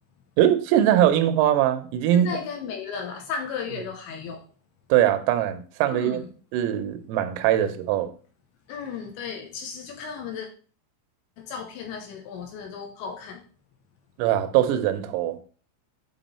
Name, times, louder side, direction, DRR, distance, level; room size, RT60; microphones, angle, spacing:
voice 1, 0.4-2.3 4.9-6.2 6.5-8.1 14.2-15.4, right 11 dB, 90° right, 3.5 m, -21 dB
voice 2, 2.1-4.4 5.9-6.3 8.7-10.5 11.4-13.4, left 6 dB, 75° left, 2.9 m, -35 dB
9.3 x 3.8 x 4.2 m
omnidirectional pair, 6.0 m